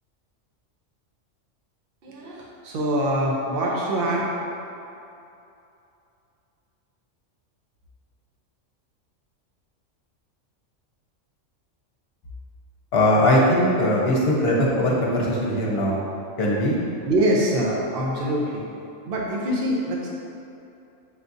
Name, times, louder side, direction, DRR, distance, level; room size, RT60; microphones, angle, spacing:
voice 1, 2.0-4.2 17.0-18.7 19.0-20.1, right 1 dB, 55° right, -4 dB, 0.8 m, -24 dB
voice 2, 12.9-16.1 16.4-16.8, left 1 dB, 60° left, -3 dB, 0.9 m, -20 dB
6.7 x 2.4 x 2.6 m, 2.7 s
omnidirectional pair, 1.3 m